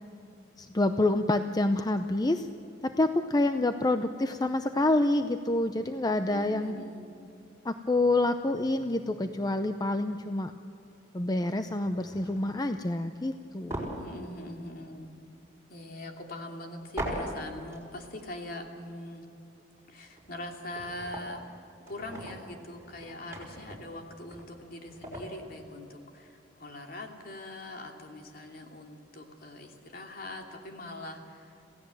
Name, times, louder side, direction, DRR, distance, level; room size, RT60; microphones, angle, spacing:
voice 1, 0.6-2.5 2.8-6.7 7.6-10.5 11.1-13.9, left 2 dB, 20° left, 8 dB, 0.6 m, -27 dB
voice 2, 6.3-7.1 13.9-15.1 15.7-19.3 19.9-31.6, left 1 dB, 55° left, 2 dB, 2.8 m, -42 dB
sound 1, 10.1-10.2 10.9-11.1 11.7-12.8 13.7-14.9 15.2-15.3 17.0-17.8 18.1-18.2 19.9-20.0 20.1-21.5 21.9-25.4, right 1 dB, 15° right, 5.6 m, -40 dB
27.0 x 16.5 x 7.7 m, 2.8 s
head